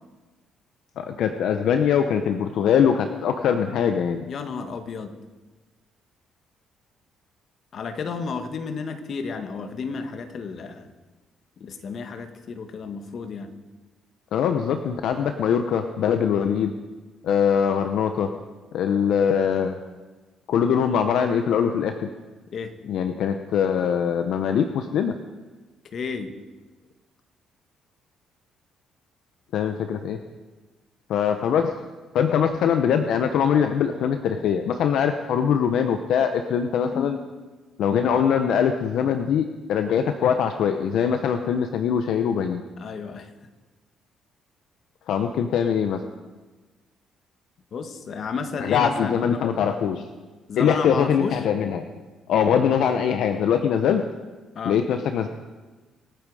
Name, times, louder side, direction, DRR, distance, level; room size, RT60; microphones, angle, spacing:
voice 1, 1.0-4.2 14.3-16.7 17.2-18.3 18.7-19.7 20.5-22.1 22.9-25.1 29.5-30.2 31.1-31.7 32.1-37.2 37.8-42.6 45.1-46.0 48.6-50.0 50.6-51.8 52.3-54.0 54.6-55.3, left 8 dB, 70° left, 7 dB, 0.9 m, -22 dB
voice 2, 4.3-5.1 7.7-10.9 11.6-13.5 22.5-22.7 25.9-26.3 36.9-37.1 42.8-43.3 47.7-49.4 50.5-51.4 54.5-54.8, left 5 dB, 50° left, 7 dB, 1.6 m, -32 dB
26.0 x 9.0 x 4.9 m, 1.3 s
cardioid pair, 115°, 0 cm